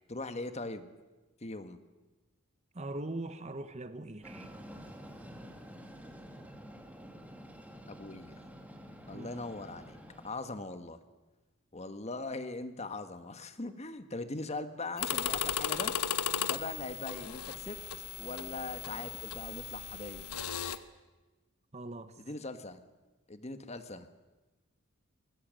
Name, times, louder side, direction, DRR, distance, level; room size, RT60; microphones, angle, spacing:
voice 1, 0.1-0.9 1.4-1.8 7.9-8.4 9.1-10.0 10.2-11.0 11.7-15.9 16.4-17.8 18.2-20.3 22.2-22.8 23.3-24.1, left 2 dB, 30° left, 1.3 m, -40 dB
voice 2, 2.7-4.5 9.1-9.3 21.7-22.1, right 2 dB, 30° right, 1.0 m, -41 dB
Train, 4.2-10.3, equal, 5° right, 2.1 m, -49 dB
sound 1, 15.0-20.8, left 9 dB, 90° left, 1.1 m, -36 dB
24.0 x 19.0 x 7.6 m
head